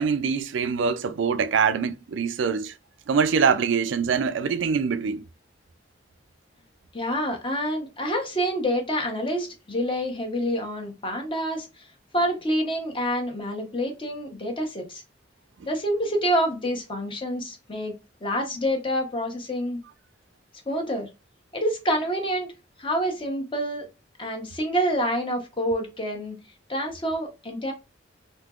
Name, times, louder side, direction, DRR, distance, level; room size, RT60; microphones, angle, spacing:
voice 1, 0.0-2.7 3.1-5.2, right 6 dB, 75° right, 0.4 m, -24 dB
voice 2, 6.9-11.9 12.1-15.0 15.6-17.9 18.2-19.8 20.7-21.1 21.5-22.5 22.8-23.9 24.2-26.4 26.7-27.7, equal, 25° left, 0.9 m, -27 dB
3.5 x 2.7 x 2.3 m
head